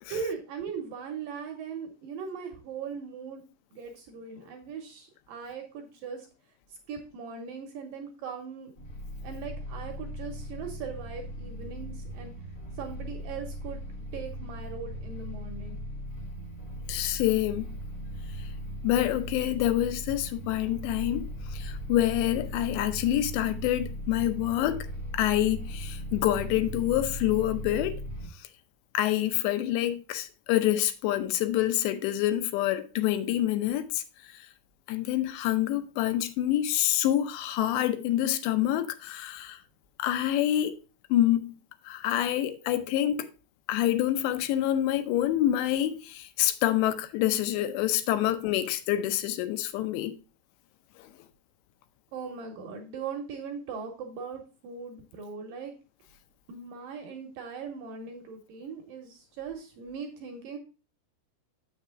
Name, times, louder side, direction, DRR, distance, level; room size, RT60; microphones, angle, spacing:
voice 1, 0.1-3.4 3.7-6.3 6.9-8.7 9.2-12.3 12.8-13.8 14.1-15.8 42.6-42.9 52.1-55.7 56.5-60.6, right 6 dB, 75° right, 2.1 m, -39 dB
sound 1, 8.8-28.3, equal, 75° left, 1.0 m, -38 dB
voice 2, 16.9-17.7 18.8-24.9 25.1-28.0 28.3-28.5 28.9-34.5 34.9-39.6 40.0-40.8 41.1-41.6 41.8-43.3 43.7-50.2 51.0-51.1, left 13 dB, 90° left, 2.9 m, -27 dB
7.4 x 6.5 x 3.6 m
omnidirectional pair, 4.9 m